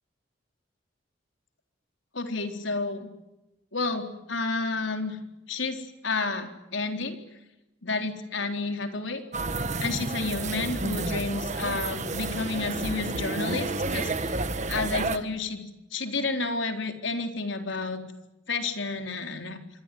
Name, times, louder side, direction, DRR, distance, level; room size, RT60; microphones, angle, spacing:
voice 1, 2.1-3.1 3.7-5.2 5.5-7.2 7.8-9.2 9.8-15.6 15.9-18.1 18.5-19.6, left 3 dB, 85° left, 5 dB, 4.0 m, -31 dB
sound 1, 9.3-15.2, right 3 dB, 40° right, 1.6 m, -30 dB
26.5 x 23.0 x 9.5 m, 0.96 s
head